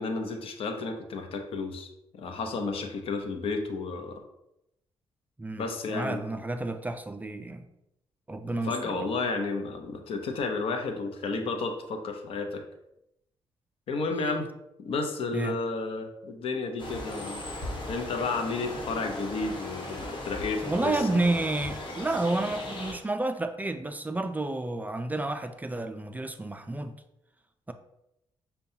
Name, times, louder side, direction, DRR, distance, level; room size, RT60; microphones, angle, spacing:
voice 1, 0.0-1.9 2.1-4.2 5.6-6.4 8.6-12.6 13.9-14.5 14.8-17.4 17.9-21.2, left 3 dB, 70° left, 4 dB, 0.7 m, -32 dB
voice 2, 5.4-7.7 8.3-9.1 15.3-15.6 20.6-27.0, right 2 dB, 15° right, 7 dB, 0.3 m, -30 dB
sound 1, 16.8-22.9, left 1 dB, 55° left, 1.2 m, -37 dB
6.7 x 2.3 x 2.7 m, 0.83 s
cardioid pair, 90°, 10 cm